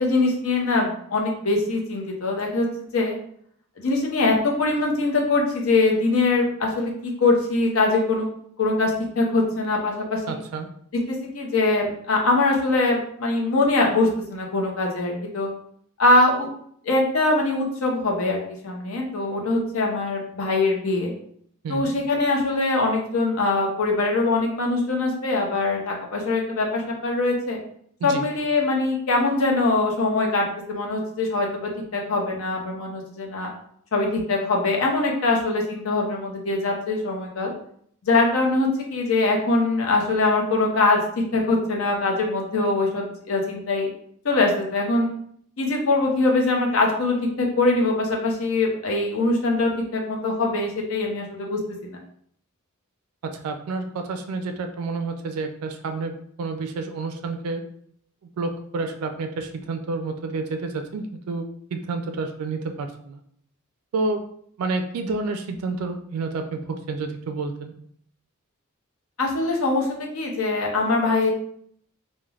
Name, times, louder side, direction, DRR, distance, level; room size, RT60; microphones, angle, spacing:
voice 1, 0.0-3.2 3.8-8.3 8.6-10.4 10.9-15.5 16.0-16.5 16.8-21.1 21.7-27.6 28.0-33.5 33.9-37.5 38.0-43.9 44.2-45.1 45.6-52.0 69.2-69.9 70.1-71.3, left 2 dB, 65° left, 0 dB, 0.6 m, -22 dB
voice 2, 10.3-10.7 21.6-21.9 28.0-28.3 53.2-57.6 58.4-63.2 63.9-64.2 64.6-67.7, right 3 dB, 80° right, 6 dB, 0.3 m, -29 dB
3.2 x 2.1 x 2.3 m, 0.65 s
head